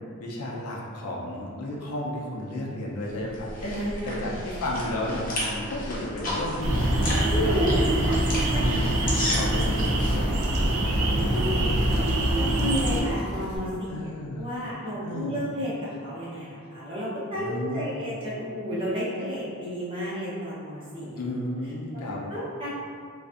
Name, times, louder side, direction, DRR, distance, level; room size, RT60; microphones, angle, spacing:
voice 1, 0.2-8.2 8.6-12.1 13.9-14.5 15.0-15.4 17.3-18.0 21.2-22.2, left 1 dB, 90° left, -3 dB, 0.5 m, -33 dB
sound 1, 3.1-10.2, left 1 dB, 40° left, 0.5 m, -33 dB
voice 2, 3.6-4.3 7.3-8.0 8.5-8.7 11.1-11.7 12.3-21.2 22.0-22.7, equal, 25° right, -9 dB, 0.6 m, -32 dB
sound 2, 6.6-13.0, right 1 dB, 85° right, 0.4 m, -24 dB
Drill, 7.6-13.6, equal, 55° right, 0.8 m, -42 dB
2.5 x 2.3 x 2.4 m, 2.2 s
head